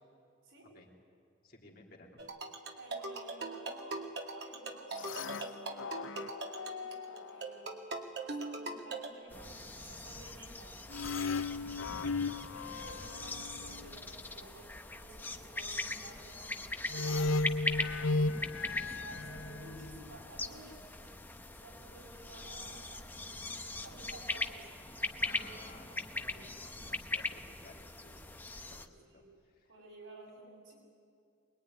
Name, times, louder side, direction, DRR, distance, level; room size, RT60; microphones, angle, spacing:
voice 1, 1.4-2.2 12.0-12.7 25.2-29.7, left 2 dB, 50° left, 0 dB, 3.3 m, -57 dB
sound 1, 2.2-9.1, right 3 dB, 55° right, 2.1 m, -41 dB
voice 2, 2.7-7.8 8.2-10.8 12.5-17.1 17.6-20.8 21.5-26.7 28.7-29.3 29.6-30.7, right 2 dB, 85° right, -1 dB, 7.4 m, -54 dB
sound 2, 4.9-7.6 10.9-14.0 16.9-20.1, left 3 dB, 80° left, 0.7 m, -36 dB
sound 3, 9.3-28.9, left 2 dB, 10° left, 0.8 m, -41 dB
23.0 x 20.5 x 9.7 m, 2.4 s
head